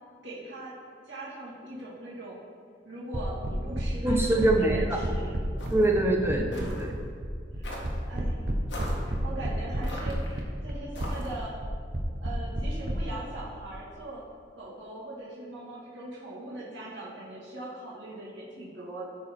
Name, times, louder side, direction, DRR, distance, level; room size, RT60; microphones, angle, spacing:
voice 1, 0.2-0.7 1.0-2.4 2.8-5.4 7.6-8.4 9.1-11.5 12.2-14.2 14.5-19.1, right 1 dB, 75° right, -7 dB, 2.1 m, -41 dB
sound 1, 3.1-12.9, right 1 dB, 55° right, 1.0 m, -31 dB
voice 2, 4.0-5.0 5.7-7.0, right 1 dB, 15° right, 0 dB, 1.0 m, -24 dB
sound 2, 5.6-5.9 6.5-6.8 7.6-8.0 8.7-9.1 9.8-10.4 10.9-11.4, left 1 dB, 70° left, 1.8 m, -40 dB
14.0 x 4.8 x 4.5 m, 2.1 s
head